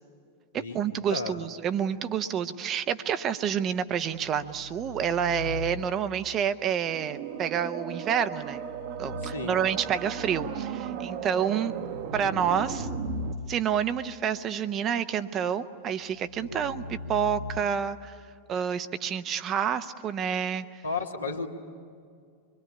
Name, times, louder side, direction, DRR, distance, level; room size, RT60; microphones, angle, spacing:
voice 1, 0.5-8.6 9.0-11.8 12.1-12.9 13.5-18.1 18.5-20.8, right 8 dB, 30° right, 11 dB, 0.8 m, -28 dB
sound 1, 3.9-6.2 8.3-10.9 11.6-14.1 16.1-17.6, left 2 dB, 75° right, 0.9 m, -40 dB
sound 2, 6.8-13.3, right 8 dB, 45° right, 1.3 m, -36 dB
voice 2, 9.3-9.6 16.4-16.5 16.8-17.4 20.8-21.5, left 4 dB, 80° left, 0 dB, 2.2 m, -34 dB
24.5 x 23.0 x 10.0 m, 2.2 s
figure-of-eight pair, 90°, 0 cm